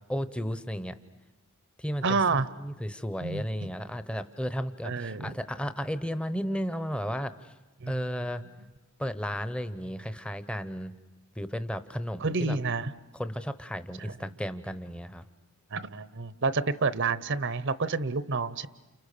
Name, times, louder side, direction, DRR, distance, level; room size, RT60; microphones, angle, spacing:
voice 1, 0.1-1.0 1.8-7.5 7.9-8.4 9.0-10.9 11.4-12.6 13.2-15.2, equal, 5° left, 12 dB, 0.9 m, -34 dB
voice 2, 2.0-2.5 3.2-3.7 4.8-5.4 7.8-8.0 12.2-12.9 14.0-14.3 15.7-18.7, right 4 dB, 60° right, 15 dB, 0.9 m, -29 dB
29.5 x 29.5 x 6.8 m, 1.1 s
head